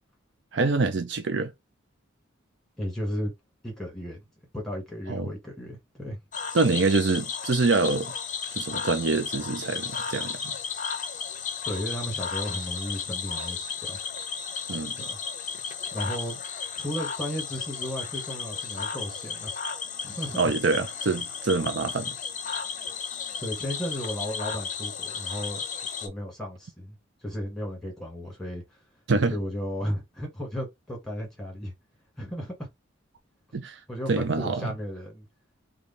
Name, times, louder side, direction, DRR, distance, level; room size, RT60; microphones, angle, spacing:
voice 1, 0.5-1.5 5.1-5.3 6.5-8.1 8.5-10.5 14.7-15.0 20.4-22.1 29.1-29.4 33.5-33.8 34.1-34.7, right 3 dB, 60° right, 0.5 m, -25 dB
voice 2, 2.8-3.3 3.6-4.2 4.5-6.2 11.6-14.0 14.9-15.2 15.9-16.4 16.7-19.5 20.0-20.5 23.4-25.6 26.0-27.0 27.2-28.8 29.3-31.7 32.2-32.7 33.9-35.3, equal, ahead, 1.6 m, -34 dB
Cricket / Frog, 6.3-26.1, left 6 dB, 40° left, 0.6 m, -34 dB
3.2 x 2.3 x 3.9 m
head